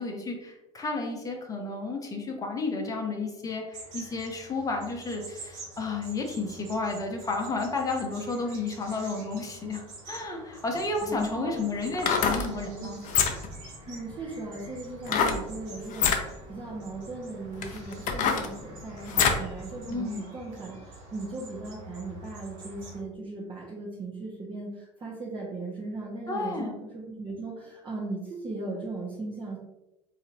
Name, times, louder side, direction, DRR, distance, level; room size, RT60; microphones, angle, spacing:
voice 1, 0.0-13.0 19.9-20.2 26.3-26.8, left 3 dB, 20° left, 1 dB, 0.8 m, -32 dB
sound 1, 3.7-23.0, right 2 dB, 65° right, 1.3 m, -47 dB
sound 2, 10.7-10.8 11.9-12.5 13.0-13.6 15.1-15.4 15.9-16.2 17.0-17.1 17.6-19.5 19.9-20.0, left 6 dB, 50° left, 0.6 m, -25 dB
voice 2, 11.0-11.5 12.4-12.9 13.2-13.3 13.8-29.6, right 3 dB, 30° right, -6 dB, 1.1 m, -38 dB
4.0 x 2.8 x 2.7 m, 0.96 s
hypercardioid pair, 80°, 17 cm